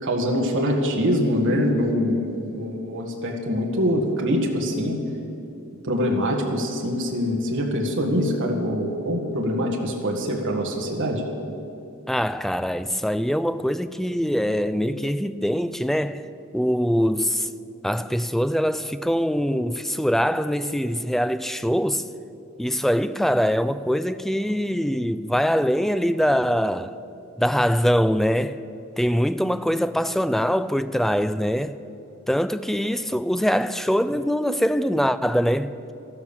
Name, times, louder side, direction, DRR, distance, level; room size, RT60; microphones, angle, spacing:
voice 1, 0.0-5.0 5.8-11.2, equal, 60° right, 1.9 m, -24 dB
voice 2, 12.1-16.2 16.5-17.5 17.8-22.0 22.6-27.0 27.4-28.6 29.0-31.8 32.3-35.7, equal, ahead, 0.4 m, -23 dB
13.5 x 12.0 x 7.2 m
head